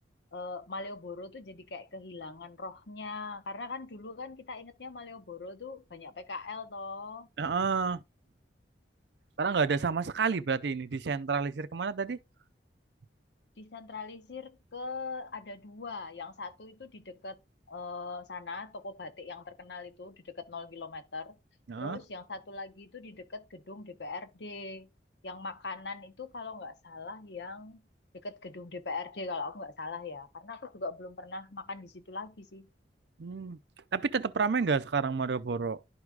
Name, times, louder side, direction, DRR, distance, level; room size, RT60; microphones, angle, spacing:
voice 1, 0.3-7.3 13.6-17.4 17.7-21.4 21.8-24.9 25.2-27.8 28.2-32.7, left 3 dB, 70° left, 0.9 m, -41 dB
voice 2, 7.4-8.0 9.4-12.2 21.7-22.0 33.2-33.6 33.9-35.8, right 5 dB, 70° right, 0.5 m, -30 dB
11.5 x 4.7 x 2.4 m
head